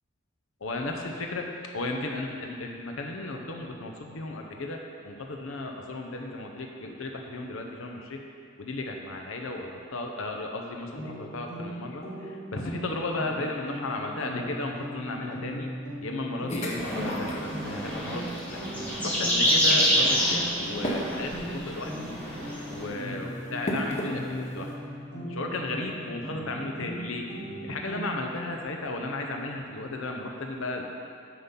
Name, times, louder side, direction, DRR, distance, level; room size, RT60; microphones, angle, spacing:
voice 1, 0.6-1.5 1.7-8.2 8.6-15.7 16.0-18.6 19.0-22.1 22.7-24.7 25.3-27.3 27.6-30.9, left 2 dB, 85° left, 2 dB, 0.8 m, -34 dB
sound 1, 10.9-28.4, equal, 50° left, 2.0 m, -39 dB
sound 2, 16.5-24.7, equal, 35° left, 0.9 m, -37 dB
sound 3, 16.8-22.9, equal, 5° left, 1.3 m, -27 dB
9.3 x 3.8 x 5.6 m, 2.3 s
head